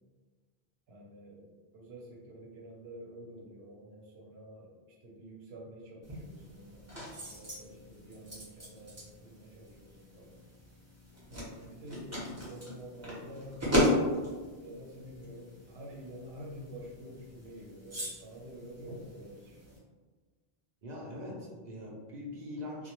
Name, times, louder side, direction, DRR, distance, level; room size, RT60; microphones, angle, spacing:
voice 1, 0.9-10.4 11.3-13.6 14.3-19.6, equal, 80° right, -2 dB, 0.8 m, -49 dB
sound 1, 6.0-19.8, left 1 dB, 15° right, 0.7 m, -37 dB
voice 2, 20.8-22.9, left 1 dB, 55° right, -4 dB, 0.5 m, -42 dB
2.2 x 2.1 x 2.8 m, 1.4 s
omnidirectional pair, 1.0 m